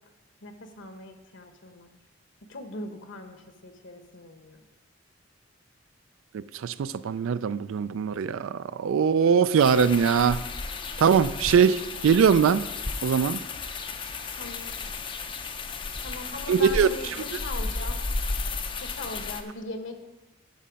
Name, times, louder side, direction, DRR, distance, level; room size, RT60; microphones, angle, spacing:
voice 1, 0.4-1.9 2.5-4.6 14.3-14.8 16.0-18.0 18.8-20.0, left 2 dB, 65° left, 6 dB, 1.0 m, -40 dB
voice 2, 6.3-10.4 11.0-12.7 13.0-13.4 16.5-16.9, right 7 dB, 75° right, 16 dB, 0.3 m, -22 dB
sound 1, 9.6-19.4, left 3 dB, 25° left, 0.4 m, -33 dB
11.5 x 5.6 x 5.2 m, 1.1 s
head